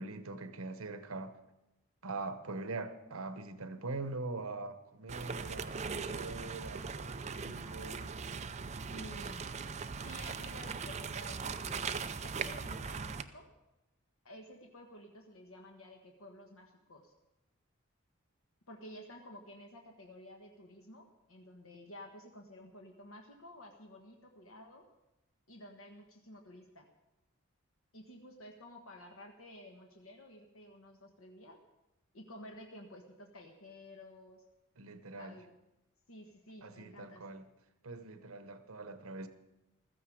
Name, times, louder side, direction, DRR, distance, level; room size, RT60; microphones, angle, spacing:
voice 1, 0.0-1.4 2.0-8.1 34.8-35.4 36.6-37.5 37.8-39.3, right 3 dB, 85° right, 1.0 m, -43 dB
sound 1, 5.1-13.2, right 5 dB, 30° right, 0.5 m, -40 dB
voice 2, 8.9-9.4 10.0-11.9 12.2-13.5 14.2-17.1 18.7-24.8 25.5-26.9 27.9-31.6 32.1-34.4 35.1-35.5 36.1-37.4, left 1 dB, 85° left, 1.4 m, -52 dB
15.0 x 14.0 x 4.9 m
head